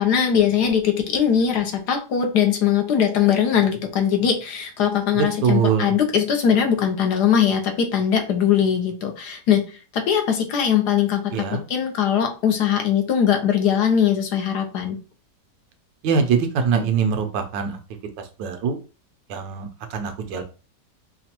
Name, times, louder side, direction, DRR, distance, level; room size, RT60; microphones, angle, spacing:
voice 1, 0.0-15.0, left 8 dB, 70° left, 4 dB, 1.3 m, -21 dB
voice 2, 5.1-5.9 11.3-11.6 16.0-17.8 18.2-18.8 19.3-20.4, right 6 dB, 85° right, 7 dB, 1.4 m, -23 dB
5.0 x 2.3 x 2.9 m, 0.32 s
omnidirectional pair, 1.9 m